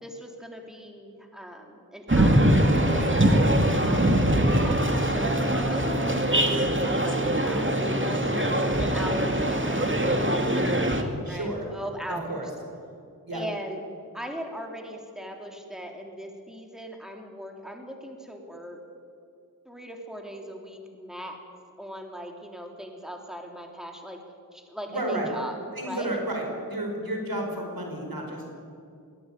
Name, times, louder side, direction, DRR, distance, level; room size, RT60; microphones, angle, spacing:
voice 1, 0.0-8.2 8.8-12.4 13.3-13.8 14.1-18.8 19.6-21.4 21.8-24.2 24.5-25.6 25.8-26.2, equal, ahead, 2 dB, 3.4 m, -39 dB
sound 1, 2.1-11.0, right 1 dB, 35° right, 2.4 m, -22 dB
voice 2, 11.2-11.7 12.1-12.5 13.3-13.4 24.9-25.3 25.7-28.5, right 1 dB, 80° right, 1 dB, 5.2 m, -31 dB
20.5 x 17.0 x 9.3 m, 2.4 s
wide cardioid pair, 45°, 35 cm